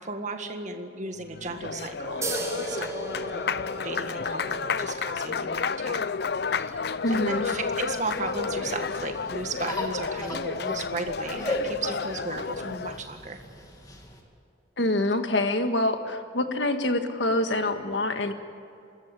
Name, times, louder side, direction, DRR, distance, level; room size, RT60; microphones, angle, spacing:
voice 1, 0.0-2.9 3.3-3.5 3.8-6.1 6.6-13.4, right 3 dB, 40° right, 5 dB, 1.8 m, -35 dB
Applause, 1.2-13.0, left 5 dB, 60° left, 0.5 m, -31 dB
sound 1, 2.2-9.3, right 1 dB, 15° right, 4.2 m, -38 dB
voice 2, 7.0-7.5 14.8-18.3, left 1 dB, 75° left, 7 dB, 1.6 m, -26 dB
sound 2, 7.0-14.2, left 1 dB, 20° left, 2.5 m, -38 dB
25.5 x 14.0 x 9.8 m, 2.5 s
head